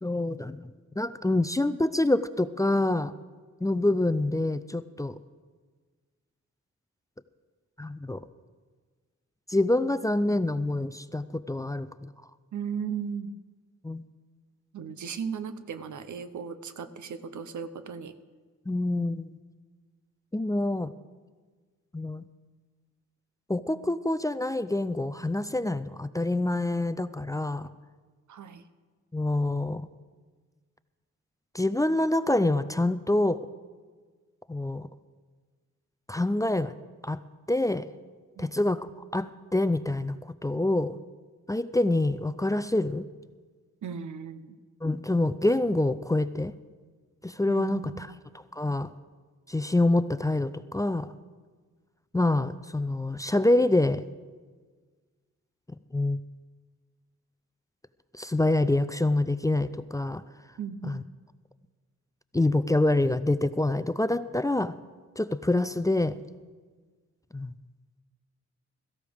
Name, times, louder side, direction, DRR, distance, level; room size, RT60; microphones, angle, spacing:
voice 1, 0.0-0.6 1.0-3.1 3.6-5.1 7.8-8.2 9.5-12.1 13.8-14.1 18.7-19.3 20.3-20.9 21.9-22.2 23.5-27.7 29.1-29.9 31.5-33.4 34.5-34.9 36.1-36.7 37.0-37.2 37.5-37.9 38.4-40.2 40.4-41.0 41.5-43.1 44.8-46.5 47.2-48.1 48.5-48.9 49.5-51.1 52.1-54.0 55.9-56.2 58.1-60.2 60.8-61.0 62.3-64.8 65.2-66.1 67.3-67.5, left 2 dB, 10° left, 13 dB, 0.4 m, -26 dB
voice 2, 12.5-13.3 14.7-18.1 28.3-28.6 38.4-38.5 43.8-44.6 47.5-48.1 60.6-61.0, right 7 dB, 80° right, 11 dB, 0.7 m, -36 dB
17.0 x 14.5 x 3.5 m, 1.5 s
cardioid pair, 80°, 29 cm